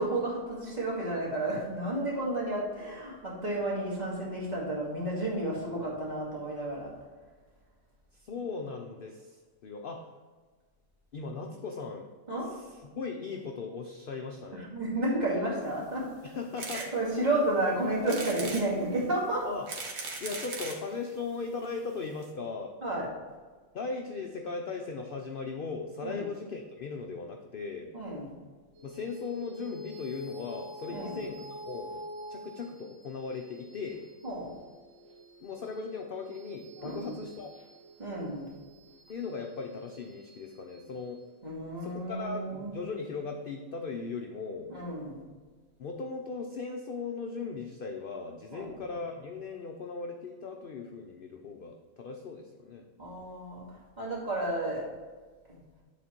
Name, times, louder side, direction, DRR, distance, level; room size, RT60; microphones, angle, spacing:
voice 1, 0.0-6.9 12.3-12.5 14.5-16.1 16.7-19.5 22.8-23.1 26.0-26.3 27.9-28.3 30.9-31.2 34.2-34.5 36.8-37.2 38.0-38.5 41.4-42.9 44.7-45.3 48.5-48.8 53.0-54.9 55.5-55.6, right 1 dB, 30° right, -7 dB, 2.4 m, -32 dB
voice 2, 8.1-10.1 11.1-12.1 12.4-14.7 16.2-16.9 19.4-19.7 20.2-22.7 23.7-27.9 28.8-32.0 32.3-34.0 35.4-37.5 39.1-41.2 41.8-44.7 45.8-52.9, left 4 dB, 60° left, 3 dB, 0.6 m, -38 dB
sound 1, 16.6-16.9 17.4-17.5 18.1-18.7 19.4-20.8 21.6-21.7 21.9-22.0 22.2-22.3, right 3 dB, 75° right, 1.5 m, -38 dB
sound 2, 28.7-43.5, left 1 dB, 45° right, 2.0 m, -48 dB
10.0 x 4.1 x 4.4 m, 1.4 s
omnidirectional pair, 1.5 m